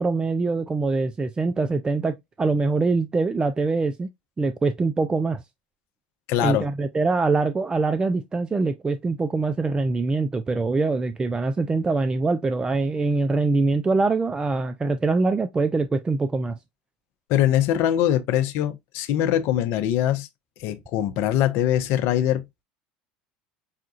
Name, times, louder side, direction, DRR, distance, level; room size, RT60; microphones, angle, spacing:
voice 1, 0.0-4.1 4.4-5.4 6.4-16.6, right 3 dB, 20° right, 0.4 m, -23 dB
voice 2, 6.3-6.7 17.3-20.3 20.6-22.4, left 11 dB, 60° left, 0.7 m, -22 dB
5.7 x 2.4 x 2.4 m
hypercardioid pair, 80°, 5 cm